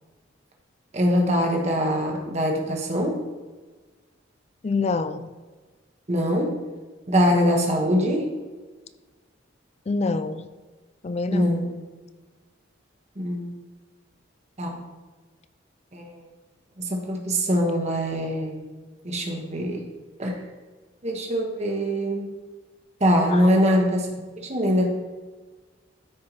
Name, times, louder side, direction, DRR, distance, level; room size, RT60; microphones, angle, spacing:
voice 1, 0.9-3.2 6.1-6.6 7.1-8.3 11.3-11.8 13.2-13.5 14.6-14.8 15.9-16.1 16.8-18.7 19.0-19.8 20.2-20.4 21.0-22.3 23.0-24.9, equal, 35° right, 1.3 m, -23 dB
voice 2, 4.6-5.3 9.9-10.5 11.0-11.6 23.3-23.5, left 3 dB, 35° left, 0.4 m, -26 dB
13.0 x 4.7 x 3.0 m
head